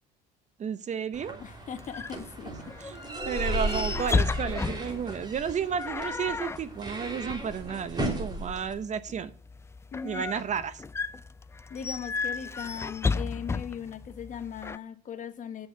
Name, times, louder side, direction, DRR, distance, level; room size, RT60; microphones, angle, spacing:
voice 1, 0.6-1.4 2.8-3.0 3.2-9.3 10.0-10.8, right 7 dB, 40° right, 0.8 m, -32 dB
sound 1, 1.1-8.7, right 1 dB, 20° right, 3.1 m, -35 dB
voice 2, 1.4-2.5 9.9-10.2 11.7-15.7, left 8 dB, 40° left, 1.2 m, -39 dB
sound 2, 1.4-14.8, left 4 dB, 15° left, 0.4 m, -34 dB
8.6 x 6.3 x 7.1 m
supercardioid pair, 90°, 19 cm